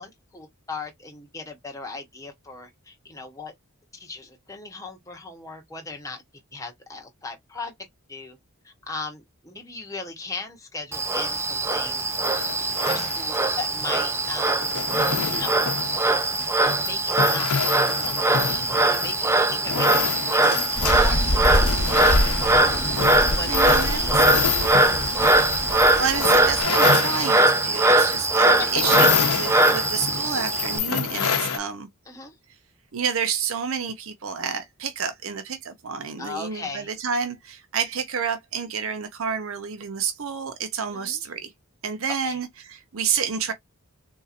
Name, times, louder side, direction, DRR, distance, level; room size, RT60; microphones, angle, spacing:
voice 1, 0.0-3.5 3.9-6.2 6.5-7.7 8.1-8.4 8.6-12.4 12.8-14.8 15.2-15.7 16.3-16.5 16.8-23.1 23.3-24.3 25.1-25.4 28.6-28.7 32.1-32.4 36.2-36.9 40.9-41.2 42.2-42.4, left 3 dB, 15° left, 0.8 m, -38 dB
Frog, 10.9-30.8, right 2 dB, 10° right, 0.4 m, -21 dB
sound 1, 11.6-31.6, left 7 dB, 90° left, 0.8 m, -29 dB
sound 2, 20.7-26.6, left 1 dB, 55° left, 1.0 m, -26 dB
voice 2, 23.5-24.2 26.0-31.9 32.9-41.5 41.8-43.5, right 6 dB, 65° right, 0.6 m, -29 dB
4.0 x 2.8 x 2.4 m
head